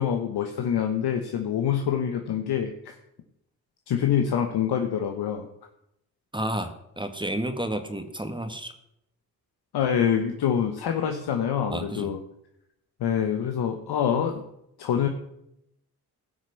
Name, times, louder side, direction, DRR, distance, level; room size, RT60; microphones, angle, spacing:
voice 1, 0.0-2.7 3.9-5.5 9.7-12.2 13.0-14.5 14.8-15.1, left 8 dB, 75° left, 4 dB, 1.2 m, -25 dB
voice 2, 6.3-8.7 11.7-12.1, right 1 dB, 10° right, 7 dB, 1.7 m, -31 dB
16.0 x 6.3 x 6.8 m, 0.79 s
supercardioid pair, 50°, 39 cm